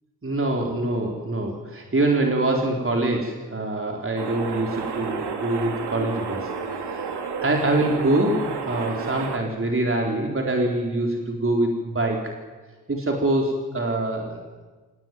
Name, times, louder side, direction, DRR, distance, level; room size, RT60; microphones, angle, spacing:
voice 1, 0.2-6.5 6.8-7.1 7.4-12.3 12.9-14.4, right 2 dB, 30° right, 1 dB, 4.3 m, -24 dB
sound 1, 4.2-9.4, right 5 dB, 80° right, 3.3 m, -31 dB
27.0 x 17.5 x 9.4 m, 1.3 s
cardioid pair, 70°, 40 cm